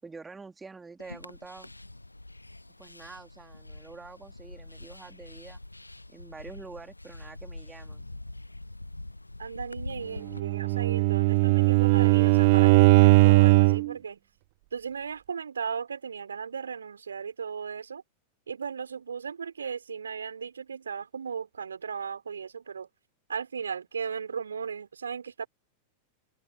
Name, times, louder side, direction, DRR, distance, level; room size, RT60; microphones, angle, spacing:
voice 1, 0.0-1.7 2.8-5.6 6.1-8.1, right 4 dB, 10° right, 4.1 m, -46 dB
sound 1, 1.0-10.4, left 2 dB, 85° left, 1.4 m, -44 dB
voice 2, 9.4-14.2 14.7-18.0 18.5-22.9 23.3-25.5, right 6 dB, 70° right, 5.2 m, -36 dB
Bowed string instrument, 10.3-13.9, right 25 dB, 50° right, 0.4 m, -19 dB
figure-of-eight pair, 90°, 0 cm